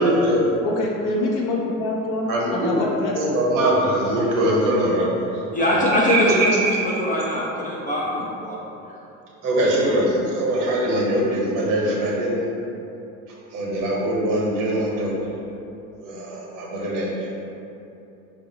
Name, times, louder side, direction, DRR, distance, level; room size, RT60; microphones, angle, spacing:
voice 1, 0.0-0.5 2.3-2.8 3.1-6.7 9.4-12.5 13.5-15.1 16.0-17.3, right 1 dB, 50° right, -3 dB, 1.0 m, -22 dB
voice 2, 0.6-3.4, left 2 dB, 50° left, -3 dB, 0.8 m, -25 dB
voice 3, 5.5-6.4 6.7-8.6 8.9-9.0, left 1 dB, 20° left, -6 dB, 0.5 m, -22 dB
4.5 x 2.5 x 2.8 m, 2.8 s
hypercardioid pair, 65°, 40 cm